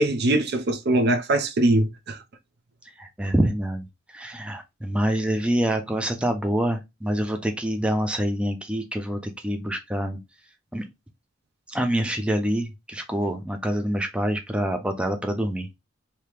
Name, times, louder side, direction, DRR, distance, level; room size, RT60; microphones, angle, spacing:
voice 1, 0.0-2.2, right 1 dB, 55° right, 0.5 m, -22 dB
voice 2, 3.0-3.8 4.1-10.2 10.7-10.8 11.7-15.7, right 1 dB, 5° right, 0.5 m, -26 dB
3.0 x 2.8 x 3.3 m
head